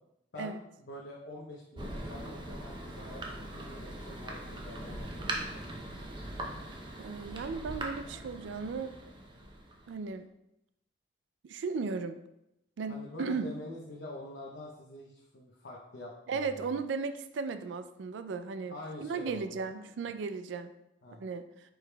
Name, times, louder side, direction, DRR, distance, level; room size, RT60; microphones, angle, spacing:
voice 1, 0.3-5.1 5.5-5.6 12.9-16.8 18.7-19.9 21.0-21.2, left 1 dB, 70° left, -3 dB, 0.7 m, -45 dB
Thunder, 1.8-10.1, right 1 dB, 25° right, 0.6 m, -41 dB
voice 2, 7.0-8.9 9.9-10.2 11.5-12.2 12.8-13.5 16.3-18.8 19.0-20.7 21.2-21.4, right 4 dB, 80° right, 10 dB, 0.3 m, -35 dB
4.8 x 4.7 x 2.2 m, 0.84 s
head